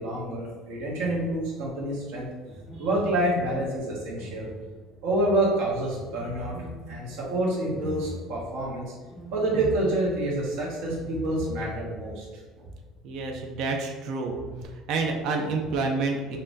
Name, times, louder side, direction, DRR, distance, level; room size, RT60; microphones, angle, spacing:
voice 1, 0.0-2.3 2.8-4.5 5.0-6.6 6.9-8.9 9.3-12.2 12.6-12.7, right 1 dB, 75° right, -5 dB, 1.4 m, -27 dB
sound 1, 1.0-1.7 2.5-5.2 5.9-12.1 12.4-12.5 14.2-14.6, equal, 20° left, 0.6 m, -40 dB
voice 2, 13.0-14.4 14.6-16.4, right 3 dB, 50° right, 2 dB, 0.6 m, -28 dB
5.4 x 2.8 x 2.7 m, 1.3 s
cardioid pair, 165°, 0 cm